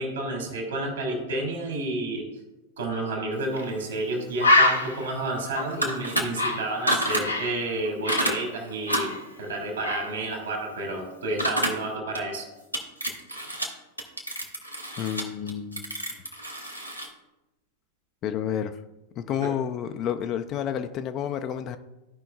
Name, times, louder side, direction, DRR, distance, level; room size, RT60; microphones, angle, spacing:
voice 1, 0.0-2.3 2.8-12.5 19.4-19.5, right 2 dB, 65° right, 2 dB, 2.3 m, -30 dB
Bird, 3.5-3.7 4.0-4.1 4.4-7.6 7.8-9.5 9.8-10.1, left 2 dB, 80° left, 0.9 m, -25 dB
sound 1, 5.7-6.2 6.9-7.2 8.1-8.4 8.9-9.2 11.4-11.7 12.1-12.2 12.7-13.7 14.0-17.1, right 1 dB, 90° right, 1.0 m, -28 dB
voice 2, 15.0-15.9 18.2-18.8 19.2-21.8, left 9 dB, 35° left, 9 dB, 0.4 m, -30 dB
14.0 x 5.2 x 2.3 m, 1.0 s
figure-of-eight pair, 90°, 0 cm